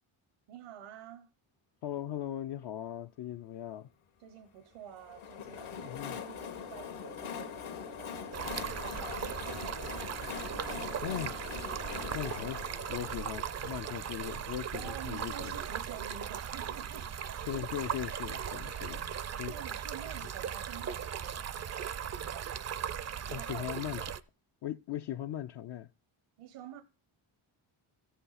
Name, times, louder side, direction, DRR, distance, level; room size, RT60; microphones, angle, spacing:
voice 1, 0.5-1.3 4.2-10.1 10.5-11.2 11.9-12.2 14.7-17.1 19.5-21.4 21.7-22.5 23.3-23.7 23.9-24.1 26.4-26.8, right 9 dB, 90° right, 1.1 m, -49 dB
voice 2, 1.8-3.9 5.8-6.2 11.0-11.3 12.1-12.6 12.9-15.5 17.5-19.5 23.3-24.1 24.6-25.9, left 11 dB, 55° left, 0.5 m, -39 dB
Train, 4.9-14.6, left 7 dB, 75° left, 1.8 m, -42 dB
Stream, 8.3-24.2, right 8 dB, 35° right, 0.4 m, -38 dB
14.0 x 8.0 x 4.1 m
cardioid pair, 130°, 50 cm